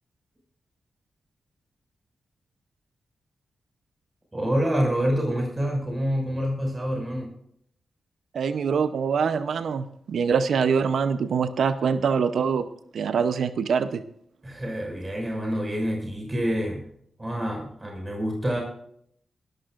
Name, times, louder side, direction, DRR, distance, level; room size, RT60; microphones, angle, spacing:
voice 1, 4.3-7.3 14.4-16.9 17.2-18.6, equal, 25° right, 0 dB, 5.8 m, -27 dB
voice 2, 8.3-12.7 12.9-14.0, right 6 dB, 75° right, 11 dB, 0.7 m, -24 dB
19.0 x 13.5 x 2.5 m, 0.67 s
cardioid pair, 55°, 0 cm